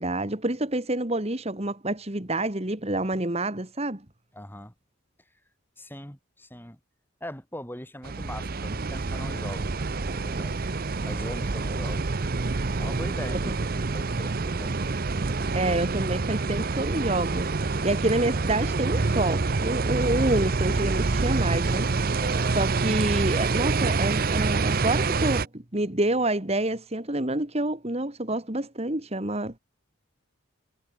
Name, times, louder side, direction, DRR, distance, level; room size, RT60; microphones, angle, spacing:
voice 1, 0.0-4.0 12.8-12.9 15.5-29.6, right 1 dB, 30° right, 2.0 m, -28 dB
voice 2, 4.3-4.7 5.8-6.8 7.2-10.6 11.1-12.1 12.8-14.9 22.2-22.6, left 1 dB, 10° left, 7.6 m, -41 dB
sound 1, 8.0-25.5, right 3 dB, 45° right, 0.7 m, -27 dB
head